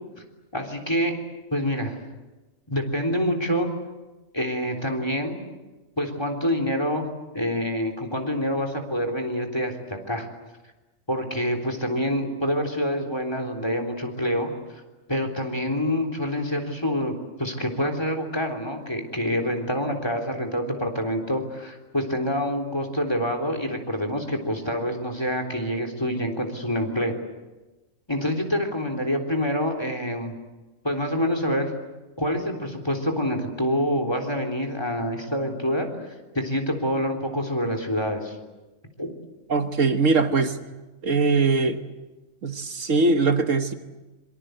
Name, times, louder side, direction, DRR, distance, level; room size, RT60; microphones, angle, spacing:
voice 1, 0.5-1.2 1.5-2.0 2.7-3.7 4.3-5.4 6.0-7.1 7.3-10.3 11.1-14.5 15.1-27.1 28.1-30.3 30.8-31.7 32.2-35.9 36.3-38.4 39.0-39.1, equal, 20° left, 5 dB, 3.6 m, -26 dB
voice 2, 39.5-40.6 41.0-41.8 42.4-43.7, right 3 dB, 70° right, 7 dB, 1.7 m, -21 dB
26.0 x 24.5 x 8.0 m, 1.1 s
omnidirectional pair, 1.4 m